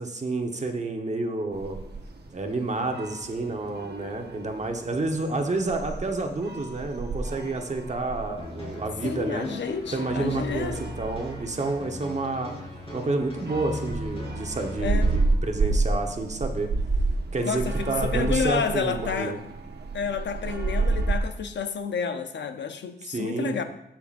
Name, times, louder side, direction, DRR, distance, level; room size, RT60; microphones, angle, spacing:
voice 1, 0.0-1.8 2.3-9.5 9.9-12.6 12.9-16.7 17.3-19.4 23.0-23.5, right 2 dB, 40° right, 4 dB, 1.1 m, -29 dB
sound 1, 1.5-21.2, right 3 dB, 70° right, 1.1 m, -31 dB
sound 2, 8.4-15.2, left 1 dB, 30° left, 3.2 m, -38 dB
voice 2, 9.0-10.8 14.8-15.1 17.4-19.4 19.9-23.6, left 6 dB, 90° left, 8 dB, 0.6 m, -30 dB
14.5 x 5.9 x 2.5 m, 0.81 s
wide cardioid pair, 95°, 18 cm